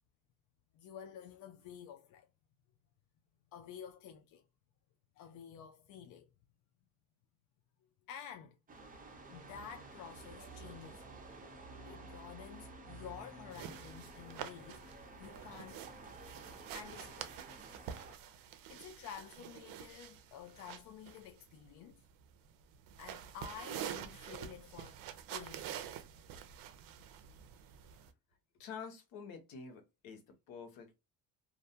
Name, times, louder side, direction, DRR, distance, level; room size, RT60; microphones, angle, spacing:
voice 1, 0.7-2.3 3.5-4.4 5.2-6.3 7.8-8.6 9.3-11.1 11.8-15.9 16.7-17.3 18.7-22.0 23.0-25.0 25.3-25.9, left 8 dB, 60° left, 0.5 m, -51 dB
sound 1, 8.7-18.1, right 3 dB, 25° right, 0.7 m, -52 dB
sound 2, 13.5-28.1, right 10 dB, 70° right, 0.5 m, -48 dB
voice 2, 28.6-31.0, left 6 dB, 80° left, 1.0 m, -48 dB
2.5 x 2.1 x 2.7 m
cardioid pair, 115°, 35 cm